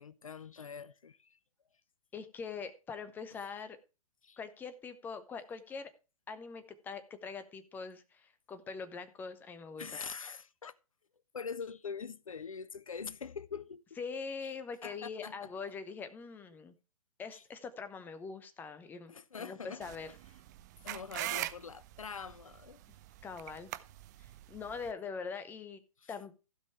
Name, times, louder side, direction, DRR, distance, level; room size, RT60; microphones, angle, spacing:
voice 1, 0.0-1.4 4.2-4.4 9.8-10.7 11.3-13.8 14.4-14.5 14.8-15.5 17.3-17.4 19.1-19.8 20.8-22.8 26.0-26.2, left 6 dB, 65° left, 0.6 m, -44 dB
voice 2, 2.1-3.8 4.4-5.9 6.3-10.0 14.0-16.7 17.2-19.1 19.4-20.1 23.2-23.7 24.2-25.8 26.1-26.3, left 5 dB, 10° left, 0.8 m, -43 dB
sound 1, 19.8-24.9, right 15 dB, 30° right, 0.6 m, -42 dB
15.5 x 5.4 x 4.7 m
figure-of-eight pair, 120°, 18 cm